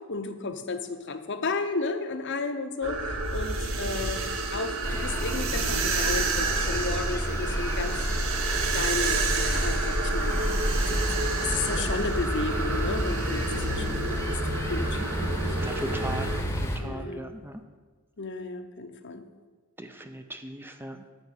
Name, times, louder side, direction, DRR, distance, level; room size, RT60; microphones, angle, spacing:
voice 1, 0.1-8.0 8.7-10.3 10.9-14.4 14.7-15.6 16.8-17.3 18.2-19.2, left 3 dB, 50° left, 8 dB, 0.8 m, -33 dB
sound 1, 2.8-16.4, right 4 dB, 65° right, 1.0 m, -30 dB
sound 2, 4.8-16.8, equal, 10° left, 0.9 m, -30 dB
voice 2, 15.6-16.3 16.7-17.6 19.8-21.0, right 1 dB, 10° right, 7 dB, 0.5 m, -38 dB
8.9 x 5.7 x 8.2 m, 1.4 s
head